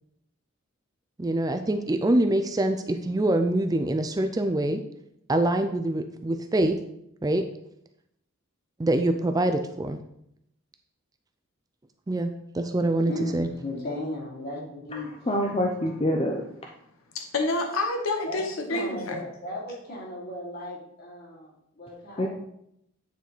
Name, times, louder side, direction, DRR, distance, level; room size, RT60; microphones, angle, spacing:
voice 1, 1.2-4.8 5.3-6.8 7.2-7.4 8.8-10.0 12.1-13.5, right 1 dB, 20° right, 6 dB, 0.4 m, -25 dB
voice 2, 13.1-15.1 18.2-22.3, left 1 dB, 50° left, -5 dB, 2.9 m, -36 dB
voice 3, 15.3-16.4 22.2-22.3, left 1 dB, 25° left, 0 dB, 0.6 m, -25 dB
voice 4, 17.1-19.2, left 2 dB, 80° left, 4 dB, 0.9 m, -28 dB
9.3 x 4.6 x 4.0 m, 0.76 s
head